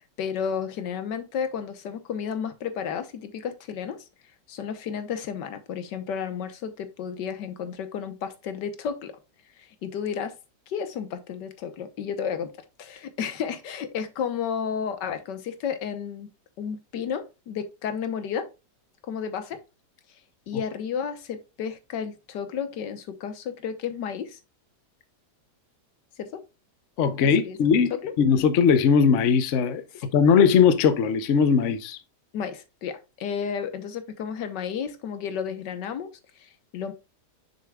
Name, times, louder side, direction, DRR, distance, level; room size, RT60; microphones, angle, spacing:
voice 1, 0.0-4.0 4.5-9.2 9.6-10.4 10.7-12.5 12.8-16.3 16.6-18.5 19.0-19.6 20.5-24.4 26.2-26.4 27.4-27.6 27.9-28.1 30.0-30.1 32.3-36.9, left 7 dB, 90° left, 1.6 m, -32 dB
voice 2, 27.0-32.0, left 6 dB, 55° left, 1.0 m, -20 dB
6.8 x 6.5 x 2.3 m
omnidirectional pair, 1.8 m